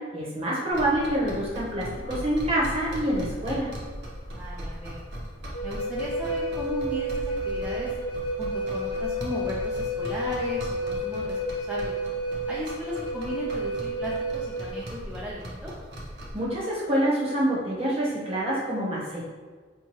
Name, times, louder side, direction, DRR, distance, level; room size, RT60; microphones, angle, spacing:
voice 1, 0.0-3.7 16.3-19.2, right 1 dB, 30° right, -5 dB, 0.8 m, -26 dB
sound 1, 0.7-16.4, equal, 60° right, 0.8 m, -39 dB
voice 2, 4.4-5.0 5.6-8.0 8.4-11.9 12.5-15.7, equal, 5° right, -7 dB, 0.3 m, -36 dB
Wind instrument woodwind instrument, 5.5-14.8, equal, 85° left, 0.5 m, -31 dB
4.5 x 2.2 x 2.9 m, 1.5 s
head